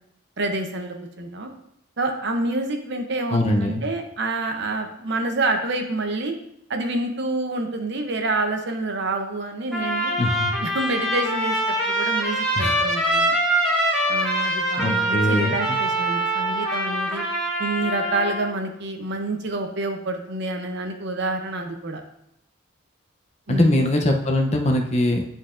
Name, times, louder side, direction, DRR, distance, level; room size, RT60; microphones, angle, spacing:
voice 1, 0.4-1.5 2.0-6.3 6.7-10.1 10.6-13.4 14.1-17.2 17.6-22.0 23.5-23.8, right 2 dB, 55° right, 4 dB, 0.7 m, -27 dB
voice 2, 3.3-3.8 10.2-10.5 12.6-12.8 14.8-15.8 23.5-25.3, left 1 dB, 30° left, 3 dB, 0.6 m, -22 dB
Trumpet, 9.7-18.5, right 1 dB, ahead, 1.2 m, -24 dB
10.5 x 4.0 x 2.5 m, 0.78 s
head